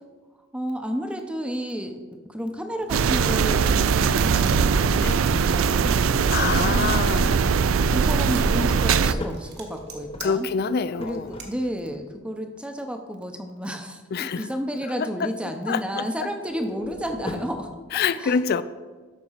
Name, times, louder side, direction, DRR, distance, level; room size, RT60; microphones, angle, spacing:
voice 1, 0.5-2.0 2.3-10.5 11.0-18.4, equal, 5° right, 5 dB, 0.7 m, -32 dB
sound 1, 2.6-3.9 8.4-12.0 16.5-17.7, left 1 dB, 30° left, 0.7 m, -39 dB
sound 2, 2.9-9.1, right 6 dB, 85° right, 0.4 m, -21 dB
voice 2, 6.3-7.4 10.2-11.3 14.1-14.4 15.0-15.3 15.7-16.3 17.9-18.6, left 6 dB, 50° left, 14 dB, 0.4 m, -26 dB
sound 3, 9.1-11.5, right 6 dB, 55° right, 1.7 m, -46 dB
12.5 x 4.2 x 5.7 m, 1.4 s
head